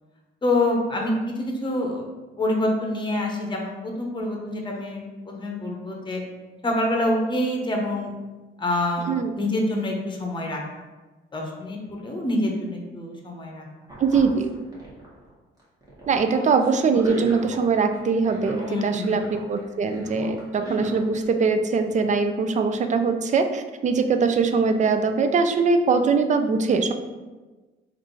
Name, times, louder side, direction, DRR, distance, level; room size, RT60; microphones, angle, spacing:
voice 1, 0.4-2.1 2.4-6.2 6.6-8.1 8.6-10.6 11.3-13.7 18.7-19.1, left 1 dB, 25° left, 0 dB, 0.9 m, -26 dB
sound 1, 13.9-15.3 15.6-17.6 17.9-19.6 19.9-21.2, right 2 dB, 20° right, 1.3 m, -36 dB
voice 2, 14.0-14.5 16.1-26.9, right 4 dB, 40° right, 7 dB, 0.4 m, -22 dB
3.5 x 2.6 x 3.9 m, 1.2 s
cardioid pair, 90°, 20 cm